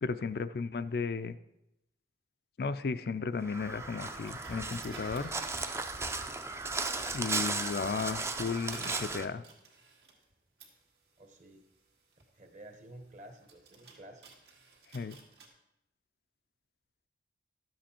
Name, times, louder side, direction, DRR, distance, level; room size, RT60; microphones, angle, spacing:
voice 1, 0.0-1.4 2.6-5.3 7.1-9.4 14.9-15.2, left 5 dB, 60° left, 11 dB, 0.4 m, -34 dB
Crow, 3.4-9.3, right 3 dB, 15° right, 0.4 m, -36 dB
sound 1, 4.3-6.3 7.0-15.5, right 3 dB, 70° right, 1.9 m, -53 dB
voice 2, 11.2-11.6 12.3-14.2, right 1 dB, 45° right, 6 dB, 1.1 m, -51 dB
12.0 x 7.6 x 4.4 m, 0.85 s
head